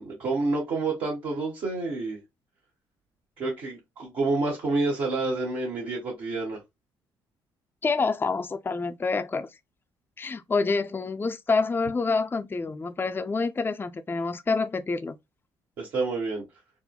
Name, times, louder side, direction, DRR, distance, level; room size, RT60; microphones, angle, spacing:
voice 1, 0.0-2.2 3.4-6.6 15.8-16.4, right 3 dB, 70° right, 1.2 m, -28 dB
voice 2, 7.8-9.5 10.2-15.1, left 4 dB, 20° left, 0.4 m, -27 dB
3.6 x 2.1 x 2.3 m
supercardioid pair, 55°, 10 cm